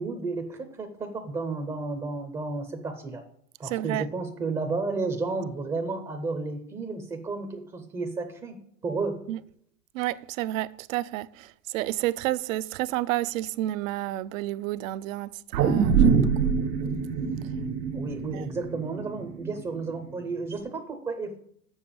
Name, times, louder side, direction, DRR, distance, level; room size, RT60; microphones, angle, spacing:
voice 1, 0.0-3.2 3.6-8.6 8.8-9.2 17.9-21.4, right 3 dB, 10° right, 0.5 m, -32 dB
voice 2, 3.6-4.1 9.3-9.4 9.9-15.3 15.6-16.3 18.3-18.5, right 15 dB, 55° right, 0.5 m, -30 dB
sound 1, 15.5-20.0 20.5-20.6, right 6 dB, 80° right, 1.5 m, -24 dB
7.2 x 6.7 x 6.9 m
supercardioid pair, 135°, 48 cm